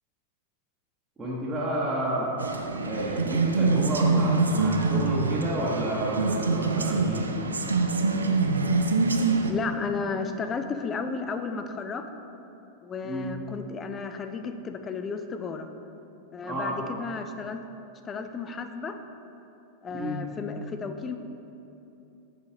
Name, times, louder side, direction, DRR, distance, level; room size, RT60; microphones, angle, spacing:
voice 1, 1.2-2.3 2.9-7.3 13.0-13.3 16.4-16.8 19.9-20.2, right 1 dB, 15° right, -8 dB, 1.0 m, -30 dB
sound 1, 2.4-9.5, right 3 dB, 75° right, 0.3 m, -25 dB
voice 2, 9.5-12.1 12.8-15.7 16.3-17.6 18.0-19.0 19.8-21.2, left 5 dB, 20° left, 7 dB, 0.3 m, -33 dB
6.8 x 5.0 x 2.8 m, 2.9 s
figure-of-eight pair, 90°, 0 cm